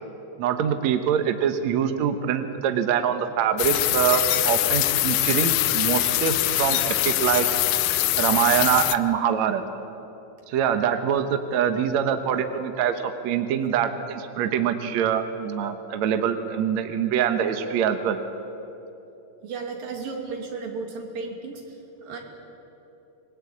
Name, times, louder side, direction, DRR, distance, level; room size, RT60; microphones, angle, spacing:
voice 1, 0.4-7.5 8.2-9.6 10.5-18.2, right 8 dB, 65° right, 8 dB, 2.2 m, -24 dB
sound 1, 3.6-9.0, left 16 dB, 75° left, 2.0 m, -23 dB
voice 2, 19.4-22.2, right 4 dB, 85° right, 2 dB, 4.4 m, -34 dB
26.0 x 21.0 x 8.6 m, 3.0 s
omnidirectional pair, 3.9 m